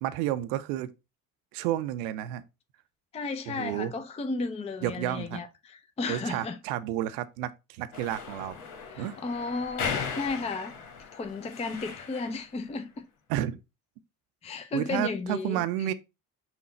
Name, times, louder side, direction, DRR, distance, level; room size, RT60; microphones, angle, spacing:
voice 1, 0.0-0.9 1.5-2.4 3.5-3.9 4.8-5.4 6.1-8.6 9.0-9.2 13.3-13.6 14.7-15.9, right 12 dB, 70° right, 0.5 m, -31 dB
voice 2, 3.1-6.6 8.9-10.7 11.1-13.0 14.4-15.9, left 3 dB, 15° left, 0.5 m, -34 dB
sound 1, 7.9-12.5, left 6 dB, 75° left, 1.1 m, -37 dB
5.6 x 2.2 x 4.1 m
hypercardioid pair, 55°, 43 cm